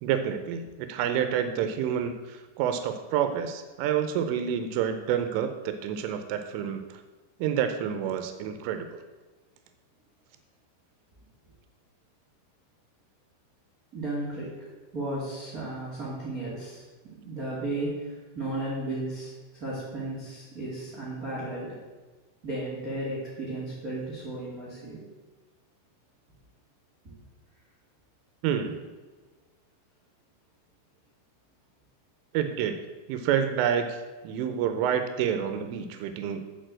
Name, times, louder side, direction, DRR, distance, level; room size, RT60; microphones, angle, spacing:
voice 1, 0.0-7.0 7.4-8.9 28.4-28.8 32.3-32.8 33.1-36.4, right 8 dB, 85° right, 8 dB, 3.3 m, -28 dB
voice 2, 13.9-14.5 14.9-16.8 17.2-21.8 22.4-25.1, right 2 dB, 35° right, -6 dB, 1.5 m, -34 dB
8.4 x 6.8 x 7.6 m, 1.3 s
omnidirectional pair, 5.6 m